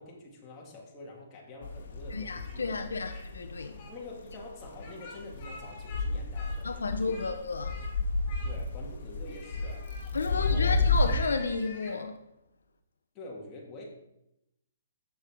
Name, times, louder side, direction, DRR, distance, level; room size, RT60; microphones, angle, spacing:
voice 1, 0.0-2.7 3.9-7.3 8.4-9.9 10.3-10.8 13.1-13.8, left 2 dB, 20° left, 2.5 m, -46 dB
sound 1, 1.6-11.2, left 3 dB, 65° left, 1.5 m, -31 dB
voice 2, 2.1-3.8 6.6-7.8 10.1-12.2, left 4 dB, 85° left, 0.8 m, -32 dB
Speech, 2.3-3.3 3.5-3.9 4.7-6.0 6.3-7.3 7.6-7.9 8.2-8.8 9.2-12.0, left 3 dB, 40° left, 3.6 m, -49 dB
7.6 x 6.7 x 4.7 m
hypercardioid pair, 145°, 0 cm